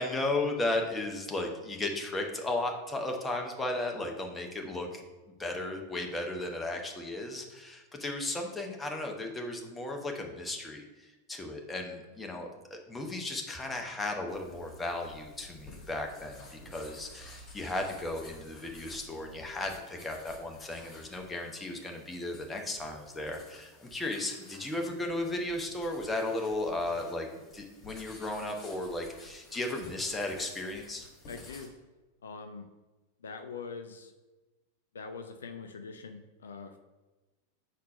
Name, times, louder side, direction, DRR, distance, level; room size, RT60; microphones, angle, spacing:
voice 1, 0.0-5.0 5.4-10.8 11.3-27.3 27.5-31.1, left 2 dB, 10° left, 2 dB, 0.9 m, -35 dB
sound 1, 14.3-31.7, left 2 dB, 30° left, 1.9 m, -53 dB
voice 2, 31.3-31.7 32.2-32.7 33.2-34.1 34.9-36.8, left 5 dB, 70° left, 7 dB, 0.4 m, -43 dB
4.3 x 4.1 x 5.3 m, 1.2 s
figure-of-eight pair, 90°, 0 cm